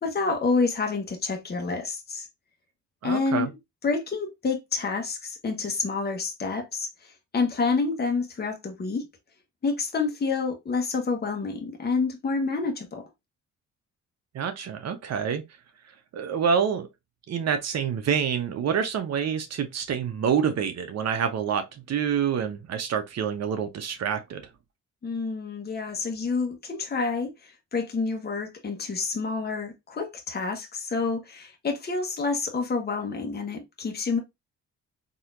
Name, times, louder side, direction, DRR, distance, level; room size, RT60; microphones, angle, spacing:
voice 1, 0.0-2.3 3.0-3.5 3.8-9.1 9.6-13.1 25.0-34.2, left 4 dB, 35° left, 1.2 m, -28 dB
voice 2, 3.0-3.5 14.3-15.4 16.1-16.9 17.3-24.5, right 7 dB, 60° right, 0.9 m, -27 dB
4.1 x 2.9 x 2.6 m
cardioid pair, 90°, 30 cm